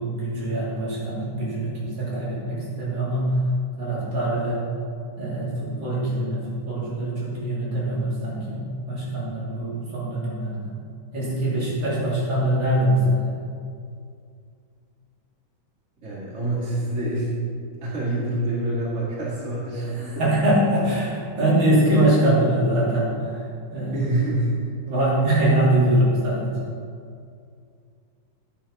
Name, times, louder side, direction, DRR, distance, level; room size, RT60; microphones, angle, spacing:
voice 1, 0.0-3.4 3.8-4.6 5.2-10.7 11.1-13.4 20.0-24.0 24.9-26.6, right 1 dB, 30° right, -8 dB, 3.1 m, -23 dB
voice 2, 16.0-17.3 17.8-20.2 23.9-24.7, right 1 dB, 50° right, -6 dB, 0.8 m, -26 dB
10.0 x 7.1 x 5.4 m, 2.3 s
omnidirectional pair, 4.6 m